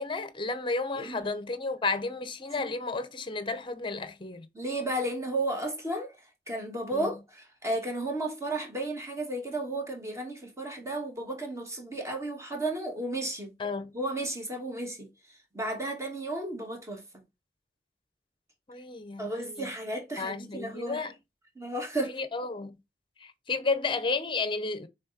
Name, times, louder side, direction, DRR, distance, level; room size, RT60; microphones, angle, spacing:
voice 1, 0.0-4.5 6.9-7.1 13.6-14.0 18.7-19.7 20.2-21.1 22.1-22.8 23.2-24.9, left 3 dB, 30° left, 0.8 m, -32 dB
voice 2, 1.0-1.3 2.6-2.7 4.5-6.1 6.5-13.5 13.9-15.1 15.5-17.0 19.2-21.1 21.6-22.2, right 1 dB, 15° right, 1.9 m, -33 dB
6.2 x 3.9 x 4.2 m
head